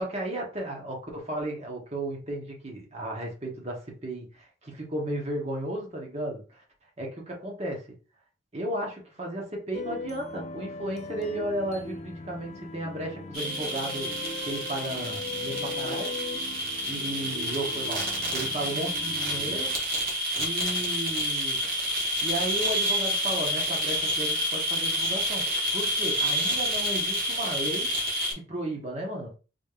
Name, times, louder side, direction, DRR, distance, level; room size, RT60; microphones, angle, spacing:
voice 1, 0.0-6.6 7.0-7.9 8.5-16.1 16.9-18.0 18.3-19.7 20.4-21.6 22.2-27.9 28.3-29.3, right 1 dB, 30° right, 1.1 m, -34 dB
sound 1, 9.7-19.7, left 3 dB, 35° left, 0.3 m, -39 dB
sound 2, 13.3-28.3, equal, 50° right, 1.4 m, -29 dB
4.0 x 3.3 x 2.4 m
head